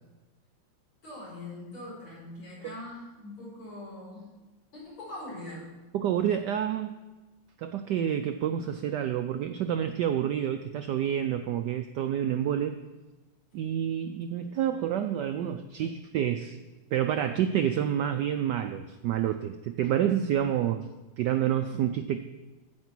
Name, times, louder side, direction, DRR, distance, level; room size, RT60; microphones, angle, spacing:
voice 1, 1.0-4.3 4.7-5.7, left 1 dB, 80° left, -6 dB, 5.7 m, -42 dB
voice 2, 5.9-6.9 7.6-12.8 13.5-16.6 16.9-20.9 21.2-22.2, right 10 dB, 90° right, 8 dB, 0.9 m, -28 dB
15.0 x 5.3 x 6.0 m, 1.1 s
omnidirectional pair, 2.4 m